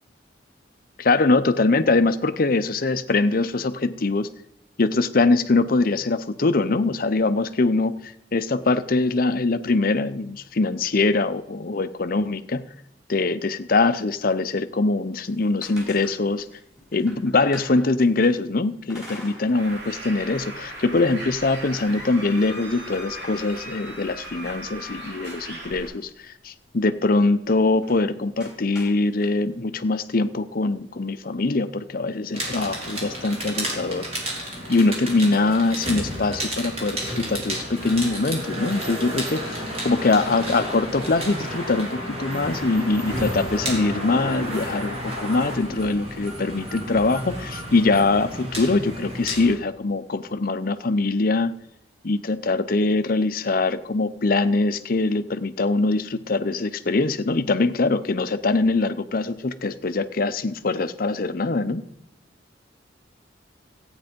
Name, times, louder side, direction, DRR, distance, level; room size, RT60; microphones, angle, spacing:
voice 1, 1.0-4.3 4.8-12.6 13.1-16.5 16.9-34.1 34.7-51.6 52.0-61.8, left 3 dB, 50° left, 11 dB, 0.7 m, -23 dB
sound 1, 15.2-18.3 18.9-19.9 20.3-20.4 21.0-25.7 27.8-28.0 28.4-29.3, left 1 dB, 5° right, 4.5 m, -43 dB
Bird, 19.5-25.9, right 1 dB, 65° right, 3.5 m, -38 dB
sound 2, 32.3-49.6, equal, 35° right, 3.2 m, -31 dB
14.5 x 8.9 x 5.2 m, 0.80 s
head